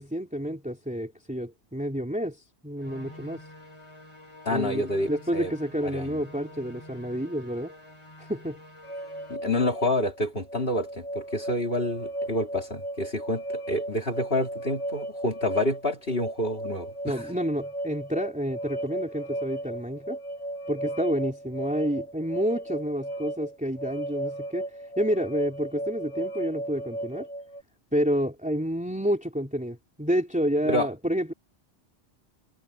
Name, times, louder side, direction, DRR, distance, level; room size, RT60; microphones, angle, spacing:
voice 1, 0.0-3.4 4.5-7.7 8.2-8.6 17.0-20.2 20.7-24.7 25.0-27.3 27.9-31.3, equal, 5° right, 3.7 m, -29 dB
sound 1, 2.8-9.4, left 1 dB, 25° left, 5.5 m, -48 dB
voice 2, 4.5-5.5 5.8-6.2 9.3-17.2 30.7-30.9, left 1 dB, 55° left, 3.7 m, -28 dB
sound 2, 8.8-27.6, right 1 dB, 80° left, 3.8 m, -36 dB
omnidirectional pair, 1.2 m